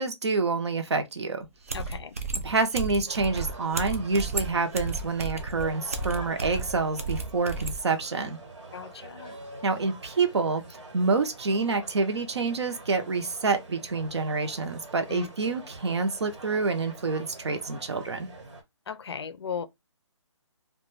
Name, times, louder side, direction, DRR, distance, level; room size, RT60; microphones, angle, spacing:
voice 1, 0.0-1.5 2.4-8.4 9.6-18.3, right 4 dB, 65° right, 0.7 m, -27 dB
sound 1, 1.4-1.5 1.7-7.8, right 3 dB, 30° right, 0.3 m, -33 dB
voice 2, 1.7-2.2 8.7-9.4 15.1-15.3 18.9-19.7, left 7 dB, 60° left, 0.4 m, -36 dB
sound 2, 3.0-18.6, right 2 dB, 90° right, 1.2 m, -45 dB
2.4 x 2.2 x 3.1 m
hypercardioid pair, 170°, 15 cm